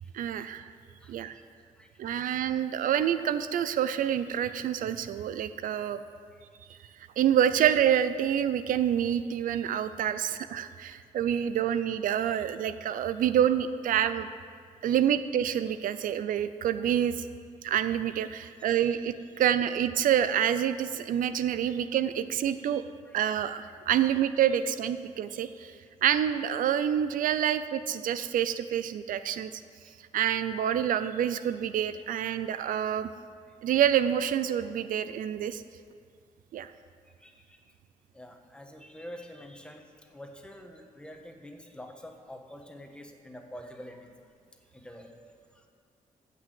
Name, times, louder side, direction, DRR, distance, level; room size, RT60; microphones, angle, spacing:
voice 1, 0.1-0.7 1.1-1.4 2.0-6.0 7.2-14.3 14.8-17.2 17.6-22.8 23.1-25.7 26.0-29.6 30.1-33.1 33.6-35.6 36.5-36.7, right 9 dB, 85° right, 12 dB, 0.5 m, -27 dB
voice 2, 1.0-1.4 1.7-2.3 6.3-6.4 10.9-11.0 14.9-15.0 18.5-18.6 21.6-21.7 23.0-23.2 29.8-29.9 37.2-37.6 38.1-44.1 44.7-45.1 45.5-45.7, equal, 5° left, 3 dB, 1.5 m, -47 dB
15.5 x 6.1 x 7.8 m, 2.1 s
cardioid pair, 105°, 14 cm